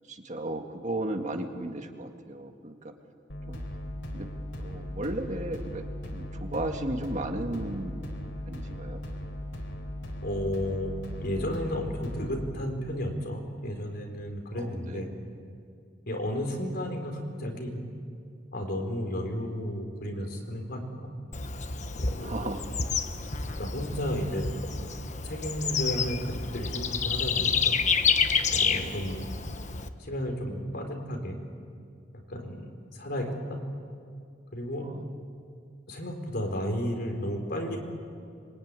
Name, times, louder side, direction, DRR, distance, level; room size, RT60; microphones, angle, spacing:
voice 1, 0.1-2.9 3.5-3.6 4.1-4.3 4.6-5.9 6.1-8.0 8.5-9.0 14.5-15.1 22.1-22.6 28.7-29.1 34.8-35.0, right 1 dB, 40° right, 4 dB, 2.0 m, -35 dB
sound 1, 3.3-12.5, left 1 dB, 90° left, 3.9 m, -38 dB
voice 2, 10.2-10.9 11.2-15.1 16.1-17.8 18.5-21.1 22.0-22.5 23.6-24.5 25.2-27.8 28.5-29.3 30.0-31.4 32.1-33.6 34.5-34.9 35.9-37.8, equal, 60° left, 3 dB, 4.3 m, -33 dB
Bird / Insect, 21.3-29.9, left 5 dB, 40° left, 1.1 m, -29 dB
25.5 x 23.5 x 9.8 m, 2.3 s
head